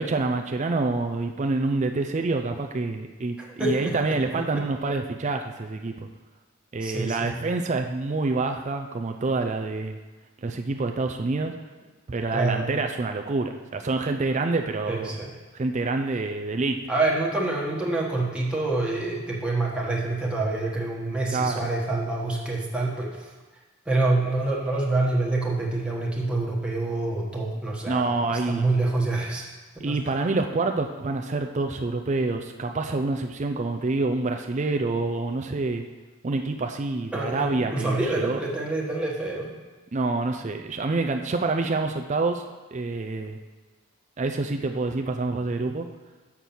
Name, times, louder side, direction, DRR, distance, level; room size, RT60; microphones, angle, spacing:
voice 1, 0.0-5.9 6.7-10.0 10.4-11.5 12.1-15.2 15.5-16.8 21.3-21.6 27.9-28.7 29.8-35.8 36.2-38.4 39.9-42.4 42.7-43.4 44.2-45.9, right 3 dB, 35° right, 5 dB, 0.4 m, -27 dB
voice 2, 3.4-4.2 4.5-4.6 6.8-7.4 12.3-12.7 14.9-15.3 16.9-23.3 23.9-29.5 29.9-30.0 37.1-39.5, right 2 dB, 5° right, -4 dB, 1.2 m, -27 dB
6.3 x 5.9 x 7.0 m, 1.3 s
head